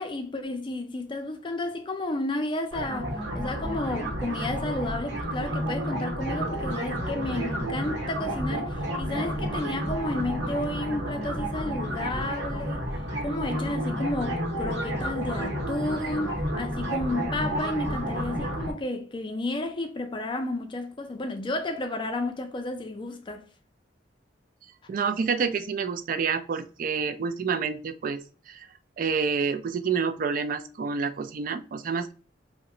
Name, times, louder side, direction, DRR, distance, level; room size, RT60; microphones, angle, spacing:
voice 1, 0.0-12.9 13.2-23.4, left 2 dB, 25° left, 0.4 m, -32 dB
sound 1, 2.7-18.7, equal, 70° right, 0.9 m, -31 dB
voice 2, 24.9-28.2 28.5-28.7 29.0-32.1, right 5 dB, 50° right, 0.3 m, -28 dB
2.8 x 2.1 x 3.7 m
head